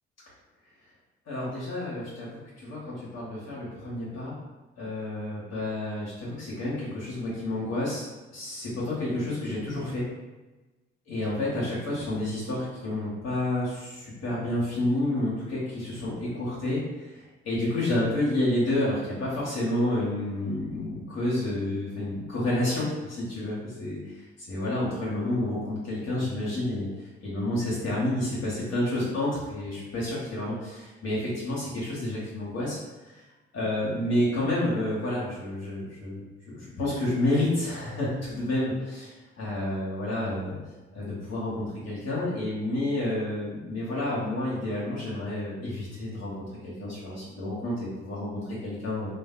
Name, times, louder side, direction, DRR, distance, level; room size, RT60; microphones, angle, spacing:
voice 1, 1.3-4.3 4.8-8.1 8.3-10.0 11.1-24.0 24.5-26.9 27.2-32.8 33.5-36.2 36.5-40.6 40.9-46.3 46.6-49.1, left 1 dB, 55° left, -7 dB, 1.1 m, -29 dB
2.5 x 2.4 x 2.4 m, 1.1 s
hypercardioid pair, 40°, 32 cm